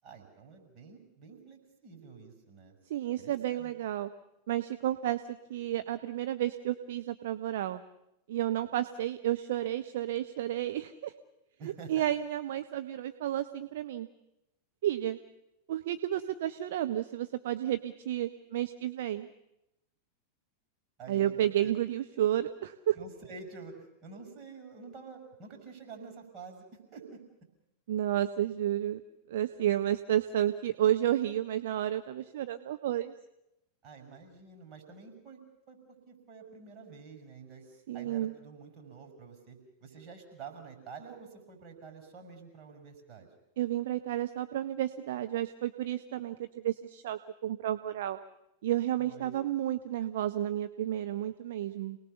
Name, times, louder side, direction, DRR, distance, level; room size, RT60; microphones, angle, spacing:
voice 1, 0.0-2.7 3.2-3.7 11.6-12.1 21.0-21.7 23.0-26.6 26.9-27.2 33.8-35.4 35.7-35.8 36.1-37.6 37.9-43.3 49.0-49.3, right 5 dB, 35° right, 3 dB, 6.7 m, -48 dB
voice 2, 2.9-4.1 4.5-7.8 8.3-11.1 11.9-14.1 14.8-15.2 15.7-19.3 21.1-23.0 27.9-29.0 29.3-33.1 37.9-38.3 43.6-48.2 48.6-52.0, right 12 dB, 55° right, 9 dB, 0.8 m, -31 dB
28.5 x 19.5 x 7.0 m, 0.88 s
figure-of-eight pair, 90°, 0 cm